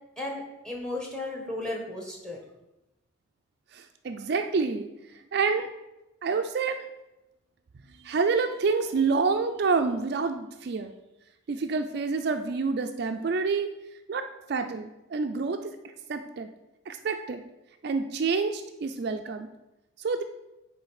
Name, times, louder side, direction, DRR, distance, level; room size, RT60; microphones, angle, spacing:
voice 1, 0.2-2.4, left 1 dB, 5° left, 1 dB, 1.1 m, -34 dB
voice 2, 3.7-5.7 6.2-6.9 8.0-10.9 11.5-13.7 14.1-15.8 16.1-16.5 16.9-17.4 17.8-19.5 20.0-20.2, right 4 dB, 50° right, 6 dB, 0.4 m, -28 dB
8.3 x 3.3 x 4.8 m, 0.95 s
head